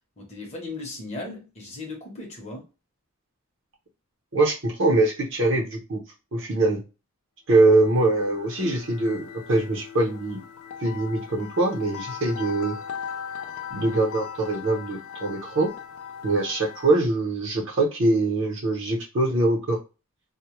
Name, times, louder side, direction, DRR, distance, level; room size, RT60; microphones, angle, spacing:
voice 1, 0.2-2.7, left 2 dB, 30° left, 0.7 m, -37 dB
voice 2, 4.3-6.0 6.3-6.8 7.5-10.4 10.8-12.8 13.7-15.7 16.2-19.8, right 2 dB, 55° right, 0.7 m, -23 dB
sound 1, 7.6-17.1, left 7 dB, 70° left, 0.3 m, -39 dB
2.1 x 2.1 x 2.9 m
head